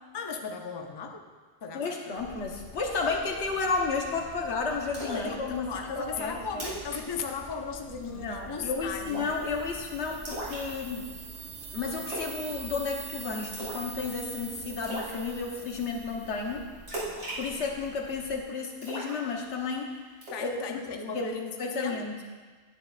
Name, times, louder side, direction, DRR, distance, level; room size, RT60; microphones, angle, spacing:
voice 1, 0.1-1.3 1.6-2.0 5.1-9.3 20.3-22.2, left 5 dB, 35° left, 4 dB, 0.5 m, -36 dB
voice 2, 1.7-5.6 6.0-6.6 8.0-11.1 11.7-16.6 17.4-19.9 20.4-20.6 21.1-21.3 21.6-22.1, left 4 dB, 80° left, 1 dB, 1.3 m, -32 dB
sound 1, 2.2-18.4, right 1 dB, 25° right, 1.5 m, -49 dB
Splash splatter, 4.9-5.3 5.7-5.8 6.2-6.3 6.5-7.0 7.3-7.5 7.8-8.2 9.1-9.4 10.3-11.1 12.1-12.4 12.6-13.0 13.5-13.9 14.2-14.3 14.8-15.1 16.9-18.1 18.8-19.7 20.2-20.5, right 1 dB, 90° right, 2.9 m, -37 dB
sound 2, 8.9-16.8, right 6 dB, 60° right, 0.8 m, -44 dB
9.9 x 9.3 x 2.4 m, 1.4 s
omnidirectional pair, 1.1 m